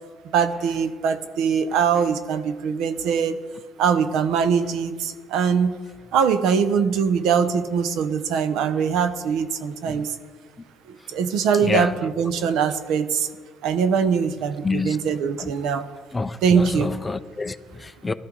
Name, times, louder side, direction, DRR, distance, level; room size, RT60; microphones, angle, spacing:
voice 1, 0.3-3.4 3.8-5.8 6.1-10.1 10.9-13.3 13.6-15.9 16.4-16.9, right 6 dB, 75° right, 0.8 m, -22 dB
voice 2, 11.6-12.0 14.6-15.0 15.4-15.5 16.1-18.1, left 3 dB, 15° left, 0.4 m, -27 dB
17.0 x 13.0 x 3.9 m
cardioid pair, 125°, 0 cm